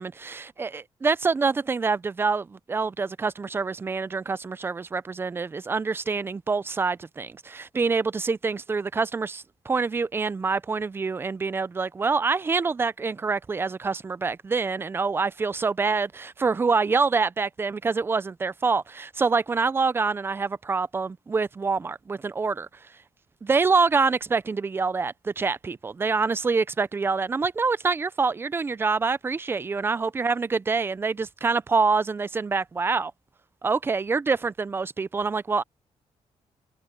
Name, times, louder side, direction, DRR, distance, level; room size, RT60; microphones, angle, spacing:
voice 1, 0.0-22.7 23.4-33.1 33.6-35.6, right 4 dB, 20° right, 0.4 m, -26 dB
wide cardioid pair, 170°, 12 cm